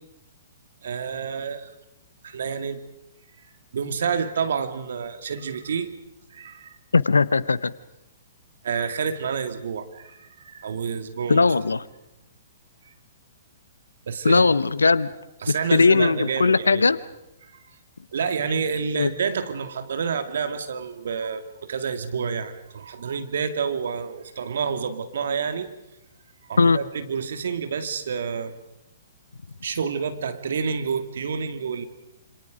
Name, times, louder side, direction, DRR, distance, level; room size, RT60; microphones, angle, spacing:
voice 1, 0.8-1.7 2.2-2.8 3.7-5.9 6.3-6.8 8.6-11.5 14.1-14.4 15.4-16.9 17.5-17.6 18.1-25.7 26.5-28.6 29.6-31.9, right 6 dB, 65° right, 9 dB, 2.3 m, -29 dB
voice 2, 6.9-7.7 11.3-11.8 14.2-15.1 15.5-17.0 19.0-19.1 26.6-26.8, left 4 dB, 85° left, 17 dB, 0.9 m, -19 dB
27.5 x 25.5 x 5.1 m, 0.86 s
hypercardioid pair, 125°, 0 cm